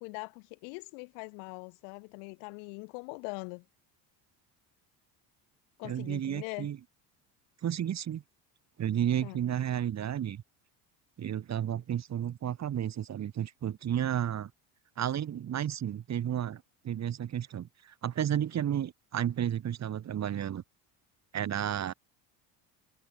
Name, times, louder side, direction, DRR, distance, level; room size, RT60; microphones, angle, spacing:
voice 1, 0.0-3.6 5.8-6.7 9.2-9.4, left 40 dB or more, 85° left, 1.2 m, -42 dB
voice 2, 5.8-6.8 7.6-8.2 8.8-10.4 11.2-14.5 15.0-20.6 21.3-21.9, right 10 dB, 40° right, 1.4 m, -32 dB
supercardioid pair, 100°, 43 cm